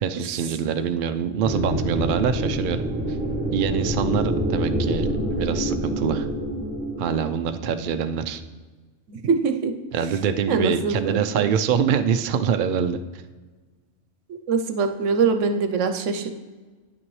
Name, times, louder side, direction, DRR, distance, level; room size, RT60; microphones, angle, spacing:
voice 1, 0.0-2.8 3.5-6.3 7.0-8.4 9.9-13.0, right 7 dB, 60° right, 8 dB, 0.5 m, -24 dB
sound 1, 1.4-8.0, right 1 dB, 10° right, 1.4 m, -27 dB
voice 2, 9.1-9.7 10.5-11.5 14.3-16.3, right 5 dB, 80° right, 7 dB, 1.1 m, -23 dB
10.0 x 8.7 x 3.1 m, 1.3 s
omnidirectional pair, 1.3 m